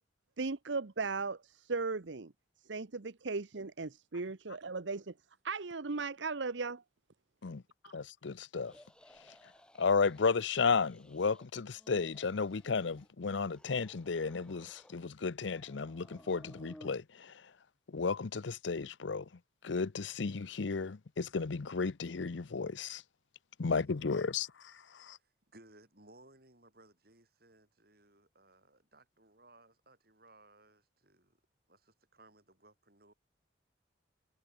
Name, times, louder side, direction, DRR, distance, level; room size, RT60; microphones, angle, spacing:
voice 1, 0.4-2.3 2.7-5.1 5.4-6.8, right 4 dB, 75° right, 0.9 m, -37 dB
voice 2, 7.9-8.7 9.8-17.0 17.9-19.2 19.6-23.0 23.6-24.5 25.1-25.2, left 4 dB, 75° left, 0.7 m, -33 dB
sound 1, 8.7-10.3 10.6-11.5 11.7-13.1 13.5-15.1 15.4-17.0, equal, 5° left, 2.0 m, -59 dB
voice 3, 24.8-31.4 31.7-33.1, right 2 dB, 55° right, 6.4 m, -62 dB
head